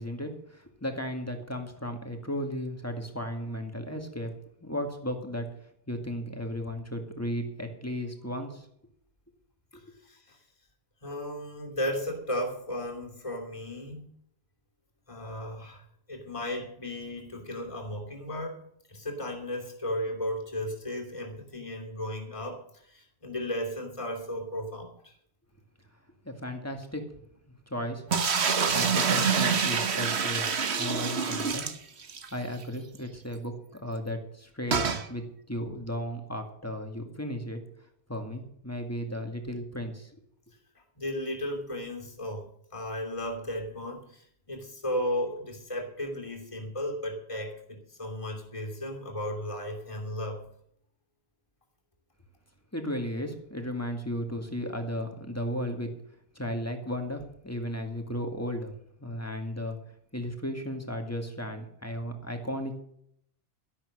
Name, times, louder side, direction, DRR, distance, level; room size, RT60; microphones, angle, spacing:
voice 1, 0.0-4.3 4.6-5.5 5.9-8.7 9.7-9.8 26.2-27.0 27.7-28.0 28.5-30.5 30.8-31.7 32.3-37.6 38.1-40.1 52.7-55.9 56.3-58.7 59.0-59.8 60.1-62.8, equal, 15° left, 4 dB, 2.1 m, -35 dB
voice 2, 10.0-10.4 11.0-14.1 15.1-18.6 18.9-25.1 41.0-50.5, left 1 dB, 30° left, 0 dB, 2.9 m, -35 dB
sound 1, 28.1-32.3 32.6-32.7 32.9-33.0 34.7-35.1, right 6 dB, 90° right, 1.4 m, -26 dB
12.5 x 11.5 x 6.5 m, 0.70 s
omnidirectional pair, 1.1 m